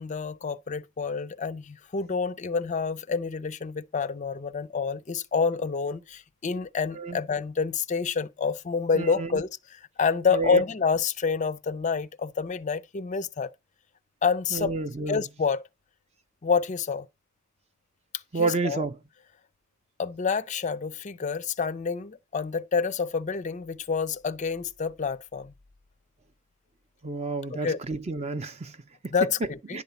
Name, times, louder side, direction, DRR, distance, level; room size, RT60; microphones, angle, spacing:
voice 1, 0.0-9.5 10.0-13.5 14.2-14.7 15.1-15.6 16.4-17.1 18.3-18.8 20.0-25.5 27.5-27.8 29.1-29.8, left 5 dB, 35° left, 0.4 m, -28 dB
voice 2, 8.9-9.4 10.3-10.6 14.5-15.2 18.3-19.0 27.0-29.1 29.7-29.8, right 3 dB, 30° right, 0.5 m, -30 dB
10.5 x 4.0 x 6.9 m
head